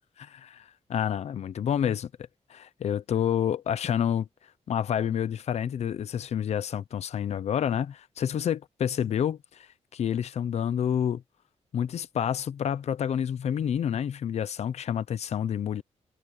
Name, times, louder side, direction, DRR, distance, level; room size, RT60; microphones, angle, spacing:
voice 1, 0.2-2.1 2.5-4.3 4.7-9.7 9.9-11.2 11.7-15.8, left 9 dB, 70° left, 0.7 m, -28 dB
wide cardioid pair, 160°, 12 cm